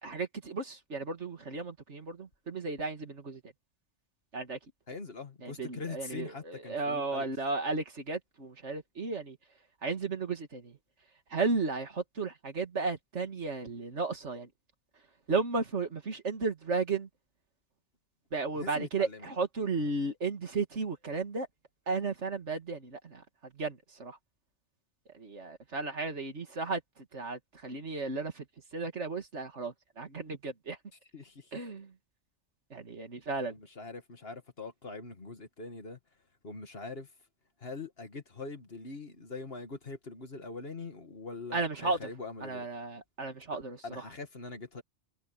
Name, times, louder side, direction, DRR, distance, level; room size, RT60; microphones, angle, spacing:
voice 1, 0.0-3.4 4.3-4.6 5.4-9.4 9.8-10.7 11.3-14.5 15.3-17.1 18.3-21.5 21.9-23.2 23.5-24.2 25.2-26.8 27.1-28.4 28.7-30.8 31.5-31.9 32.7-33.5 41.5-42.0 42.4-43.8, right 3 dB, 75° right, 2.5 m, -34 dB
voice 2, 4.9-7.3 18.5-19.3 31.1-31.7 33.5-36.0 36.4-37.1 37.6-42.7 43.5-44.8, left 3 dB, 55° left, 2.4 m, -43 dB
omnidirectional pair, 1.2 m